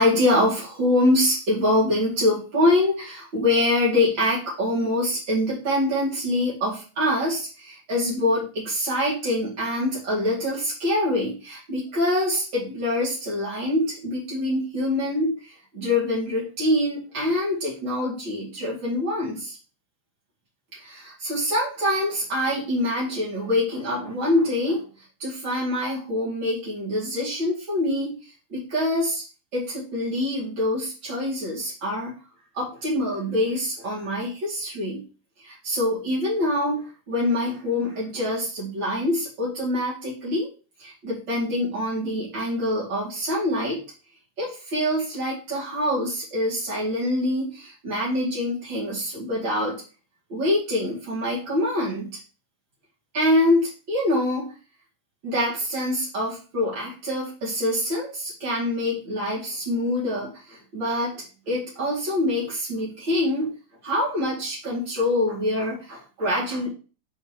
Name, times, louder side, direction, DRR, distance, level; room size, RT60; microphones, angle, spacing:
voice 1, 0.0-19.6 20.7-24.9 25.2-29.2 29.5-32.1 32.5-35.0 35.4-40.5 40.8-43.8 44.4-49.8 50.3-52.2 53.1-54.5 55.2-63.5 63.8-66.7, left 1 dB, 55° right, -6 dB, 1.3 m, -25 dB
8.6 x 2.9 x 5.0 m, 0.36 s
omnidirectional pair, 5.7 m